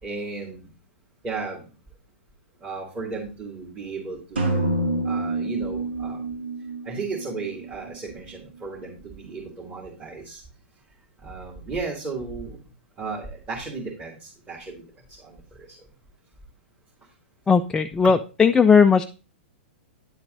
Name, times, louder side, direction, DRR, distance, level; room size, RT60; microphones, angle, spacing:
voice 1, 0.0-0.7 1.2-1.7 2.6-4.7 5.0-6.4 6.8-10.4 11.2-12.6 13.0-15.7, right 4 dB, 25° right, -5 dB, 2.5 m, -35 dB
sound 1, 4.4-8.2, right 2 dB, 80° right, 2.0 m, -28 dB
voice 2, 17.5-19.0, left 5 dB, 10° left, 6 dB, 0.3 m, -17 dB
9.9 x 7.4 x 2.6 m, 0.33 s
hypercardioid pair, 115°, 6 cm